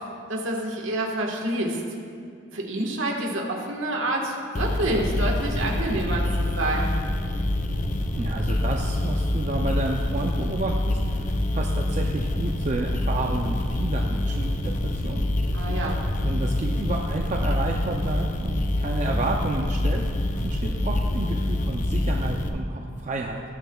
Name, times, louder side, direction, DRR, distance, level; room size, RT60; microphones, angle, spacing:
voice 1, 0.3-1.8 2.5-7.0 15.5-16.0, right 1 dB, 75° right, 0 dB, 1.4 m, -28 dB
sound 1, 4.5-22.5, left 1 dB, 40° left, 0.5 m, -26 dB
voice 2, 8.2-15.3 16.2-23.4, right 2 dB, 35° right, 1 dB, 0.4 m, -30 dB
19.0 x 6.7 x 2.3 m, 2.3 s
head